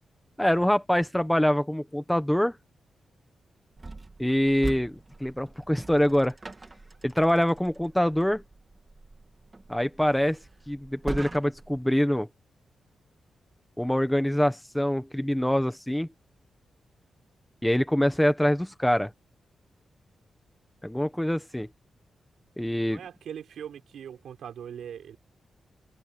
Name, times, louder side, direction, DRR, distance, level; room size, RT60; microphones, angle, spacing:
voice 1, 0.4-2.6 4.2-6.4 7.0-8.4 9.7-10.4 10.7-12.3 13.8-16.1 17.6-19.1 20.8-21.7 22.6-23.0, equal, 5° left, 1.2 m, -25 dB
sound 1, 3.8-11.8, right 3 dB, 20° right, 1.9 m, -42 dB
voice 2, 22.8-25.2, right 8 dB, 85° right, 5.5 m, -41 dB
wide cardioid pair, 160°, 0 cm